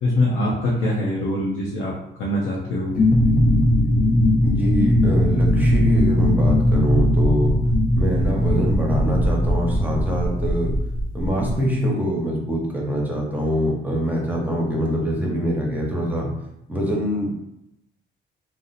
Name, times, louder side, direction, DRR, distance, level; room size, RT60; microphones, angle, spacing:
voice 1, 0.0-1.9 2.2-2.9, left 1 dB, 90° left, -4 dB, 0.7 m, -23 dB
sound 1, 3.0-11.5, left 1 dB, 45° left, 0.8 m, -19 dB
voice 2, 4.4-7.6 7.9-10.8 11.1-16.3 16.7-17.3, equal, 10° right, -2 dB, 0.8 m, -24 dB
2.9 x 2.0 x 3.9 m, 0.84 s
cardioid pair, 90°, 20 cm